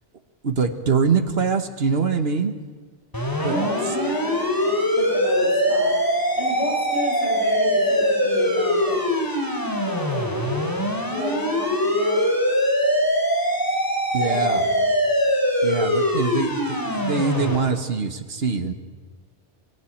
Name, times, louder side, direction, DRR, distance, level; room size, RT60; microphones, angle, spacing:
voice 1, 0.4-2.5 3.4-3.5 14.1-14.7 15.6-18.7, right 5 dB, 60° right, 9 dB, 1.5 m, -23 dB
sound 1, 3.1-17.6, equal, 15° left, 3.2 m, -22 dB
voice 2, 3.4-5.9 6.4-9.0 9.8-10.7 11.0-12.2 14.2-14.8, left 1 dB, 70° left, -3 dB, 7.7 m, -30 dB
21.5 x 16.5 x 8.6 m, 1.5 s
omnidirectional pair, 1.2 m